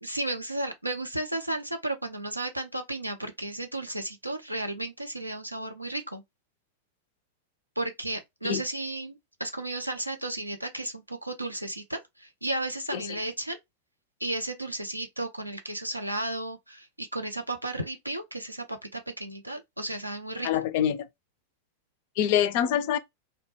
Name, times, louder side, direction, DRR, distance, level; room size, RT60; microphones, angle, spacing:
voice 1, 0.0-6.2 7.8-13.6 14.2-20.5, right 1 dB, 85° right, 0.5 m, -34 dB
voice 2, 20.4-21.1 22.2-23.0, left 10 dB, 50° left, 0.3 m, -25 dB
2.1 x 2.1 x 3.1 m
figure-of-eight pair, 90°, 0 cm